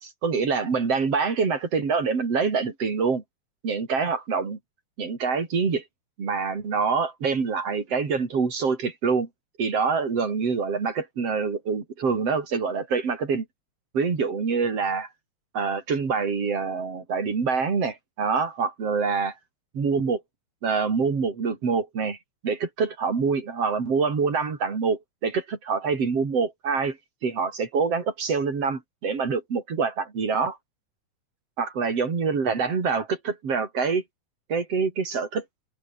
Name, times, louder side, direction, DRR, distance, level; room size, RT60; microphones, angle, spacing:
voice 1, 0.2-3.2 3.6-4.6 5.0-5.8 6.2-9.3 9.6-13.4 13.9-15.1 15.5-19.4 19.7-20.2 20.6-22.2 22.4-27.0 27.2-30.6 31.6-34.0 34.5-35.4, right 5 dB, 50° right, 4.7 m, -25 dB
omnidirectional pair, 3.5 m